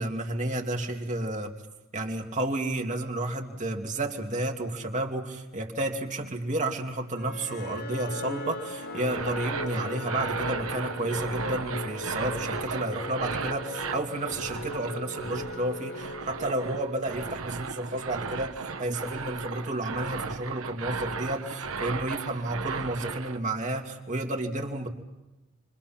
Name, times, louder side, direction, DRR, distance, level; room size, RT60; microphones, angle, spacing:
voice 1, 0.0-1.5 1.9-24.9, right 1 dB, 35° right, 2 dB, 2.7 m, -31 dB
sound 1, 7.2-17.4, left 2 dB, 50° left, 1.7 m, -38 dB
sound 2, 9.0-23.4, right 4 dB, 80° right, 1.4 m, -36 dB
30.0 x 25.0 x 5.9 m, 1.0 s
head